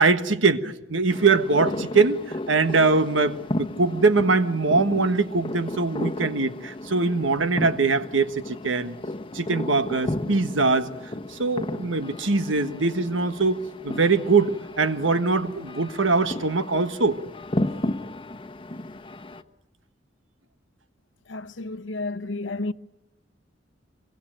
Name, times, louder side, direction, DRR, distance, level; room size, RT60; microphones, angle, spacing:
voice 1, 0.0-8.9 9.3-10.9 11.3-17.2, right 3 dB, 85° right, 1.5 m, -22 dB
sound 1, 1.1-19.4, left 1 dB, 25° left, 1.0 m, -34 dB
voice 2, 21.3-22.7, left 2 dB, 70° left, 1.0 m, -31 dB
25.5 x 23.5 x 9.1 m
head